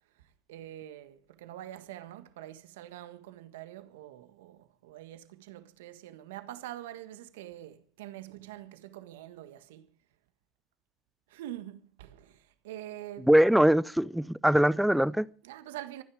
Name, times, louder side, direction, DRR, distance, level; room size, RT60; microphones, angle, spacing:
voice 1, 0.1-9.9 11.3-13.3 15.4-16.0, right 13 dB, 80° right, 1.6 m, -45 dB
voice 2, 13.3-15.3, right 1 dB, 5° right, 0.7 m, -22 dB
25.5 x 10.0 x 5.0 m
hypercardioid pair, 85°, 0 cm